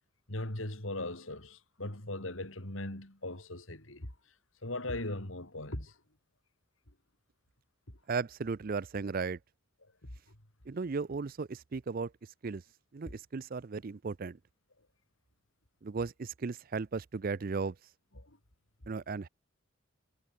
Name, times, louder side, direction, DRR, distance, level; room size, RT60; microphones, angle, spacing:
voice 1, 0.3-4.1 4.6-6.0 7.9-8.0 10.0-10.1 18.1-18.4, left 1 dB, 70° left, 4.4 m, -39 dB
voice 2, 8.1-9.4 10.7-12.1 12.4-12.6 12.9-14.4 15.8-17.8 18.9-19.3, right 4 dB, 45° right, 0.4 m, -35 dB
head